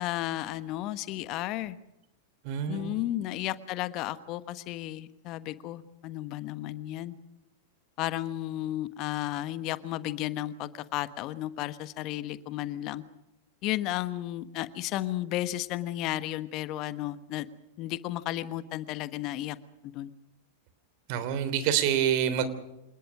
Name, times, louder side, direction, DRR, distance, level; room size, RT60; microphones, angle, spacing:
voice 1, 0.0-1.8 2.7-7.2 8.0-13.0 13.6-17.5 17.8-19.6 19.8-20.1, left 14 dB, 45° left, 13 dB, 1.3 m, -33 dB
voice 2, 2.4-2.9 21.1-22.5, right 9 dB, 50° right, 12 dB, 3.3 m, -27 dB
27.0 x 20.0 x 6.2 m, 0.89 s
hypercardioid pair, 95°, 0 cm